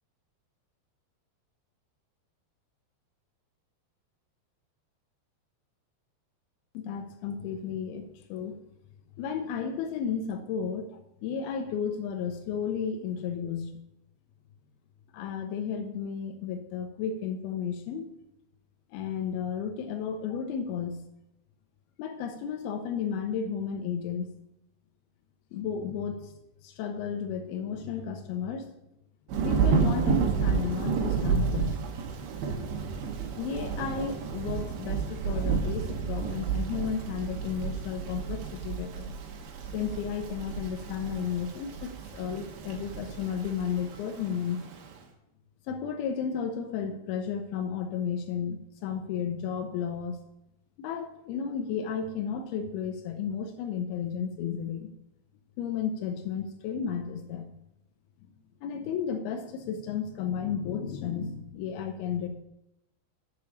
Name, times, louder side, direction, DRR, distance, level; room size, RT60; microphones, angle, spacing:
voice 1, 6.7-8.6 9.2-13.7 15.1-18.1 18.9-21.0 22.0-24.3 25.5-26.3 26.6-28.7 29.4-31.9 33.4-39.1 39.7-44.6 45.7-50.2 50.8-54.9 55.6-57.5 58.6-62.3, left 7 dB, 80° left, 4 dB, 2.3 m, -33 dB
Thunder / Rain, 29.3-44.9, right 6 dB, 75° right, 2.5 m, -31 dB
6.9 x 4.9 x 6.9 m, 0.84 s
omnidirectional pair, 4.9 m